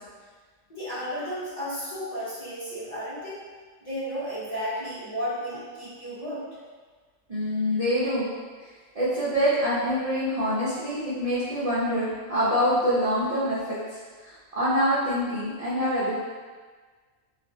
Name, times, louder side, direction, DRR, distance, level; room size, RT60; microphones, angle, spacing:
voice 1, 0.7-3.5 3.8-6.4, equal, 35° left, -11 dB, 0.8 m, -33 dB
voice 2, 7.3-8.3 8.6-8.7 8.9-16.1, equal, 60° right, -10 dB, 0.3 m, -25 dB
2.5 x 2.4 x 2.6 m, 1.5 s
omnidirectional pair, 1.3 m